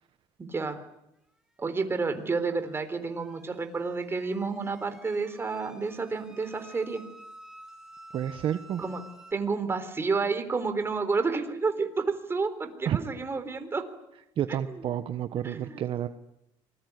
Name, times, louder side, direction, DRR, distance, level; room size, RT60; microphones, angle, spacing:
voice 1, 0.4-0.8 1.6-7.0 8.8-9.0 9.3-13.8 14.5-14.8 15.4-15.8, right 4 dB, 25° right, 8 dB, 3.9 m, -30 dB
sound 1, 1.7-9.3, right 1 dB, 5° right, 3.6 m, -52 dB
voice 2, 8.1-8.8 12.8-13.0 14.4-16.1, right 10 dB, 55° right, 9 dB, 1.3 m, -30 dB
27.0 x 21.0 x 9.6 m, 0.84 s
cardioid pair, 115°, 11 cm